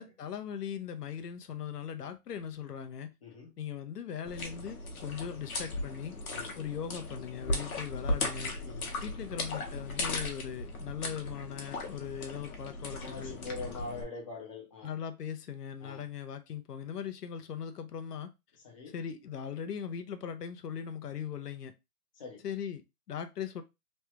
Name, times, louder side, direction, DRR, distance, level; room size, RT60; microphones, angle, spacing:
voice 1, 0.0-3.1 3.6-6.2 6.6-8.6 9.0-13.3 14.8-18.3 18.9-21.7 22.4-23.6, left 8 dB, 80° left, 0.7 m, -39 dB
sound 1, 4.2-14.0, left 2 dB, 60° left, 1.1 m, -37 dB
voice 2, 8.6-8.9 13.0-14.9 15.8-16.0 18.6-18.9 22.2-22.4, left 3 dB, 20° left, 0.6 m, -43 dB
3.2 x 2.3 x 3.0 m
hypercardioid pair, 160°, 47 cm